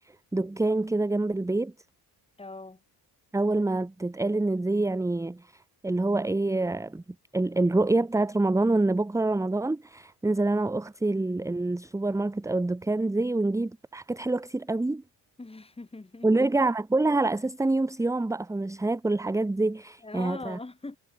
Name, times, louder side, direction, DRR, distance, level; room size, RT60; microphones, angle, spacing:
voice 1, 0.3-1.7 3.3-7.0 7.3-15.0 16.2-20.6, right 2 dB, 10° right, 0.9 m, -26 dB
voice 2, 2.4-2.8 15.4-16.3 20.0-21.0, left 2 dB, 15° left, 3.8 m, -41 dB
cardioid pair, 130°, 41 cm